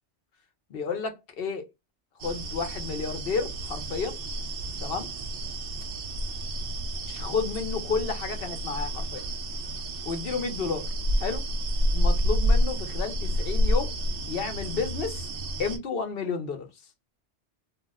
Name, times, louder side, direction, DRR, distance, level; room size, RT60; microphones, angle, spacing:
voice 1, 0.7-1.7 2.2-4.2 4.8-5.1 7.1-9.2 10.0-10.9 11.2-11.4 11.9-13.9 14.3-15.3 15.6-16.7, left 5 dB, 60° left, 0.9 m, -31 dB
sound 1, 2.2-15.8, equal, 60° right, 0.7 m, -29 dB
2.7 x 2.1 x 3.4 m
omnidirectional pair, 1.2 m